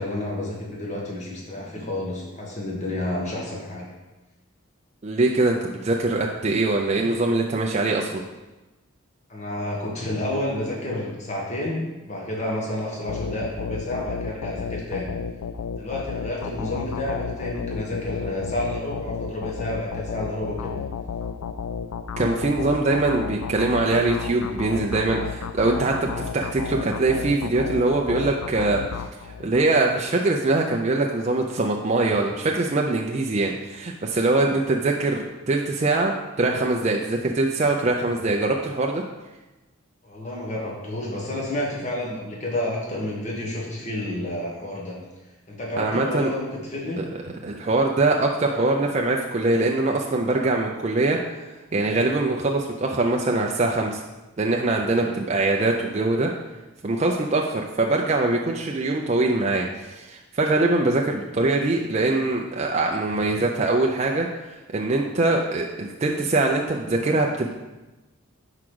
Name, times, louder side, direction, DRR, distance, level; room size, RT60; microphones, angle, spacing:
voice 1, 0.0-3.9 9.3-15.1 15.7-20.7 40.0-45.0 45.5-47.0, left 1 dB, 35° left, -3 dB, 1.3 m, -30 dB
voice 2, 5.0-8.2 22.2-28.8 29.2-39.0 45.8-46.3 47.0-47.1 47.4-51.2 51.7-54.0 54.4-56.3 56.8-67.5, right 2 dB, 30° right, 0 dB, 0.4 m, -23 dB
sound 1, 13.1-29.7, left 6 dB, 85° left, 0.4 m, -33 dB
4.9 x 4.8 x 6.1 m, 1.1 s
head